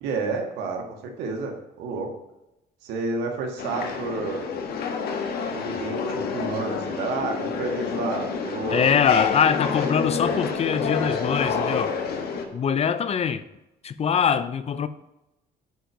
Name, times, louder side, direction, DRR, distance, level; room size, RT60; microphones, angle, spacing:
voice 1, 0.0-2.1 2.8-4.5 5.5-8.9, right 3 dB, 90° right, 1.9 m, -30 dB
sound 1, 3.6-12.5, left 5 dB, 70° left, 1.5 m, -28 dB
voice 2, 8.7-11.9 12.5-13.4 13.8-14.9, left 7 dB, 40° left, 0.6 m, -23 dB
9.3 x 4.6 x 5.2 m
cardioid pair, 110°, 17 cm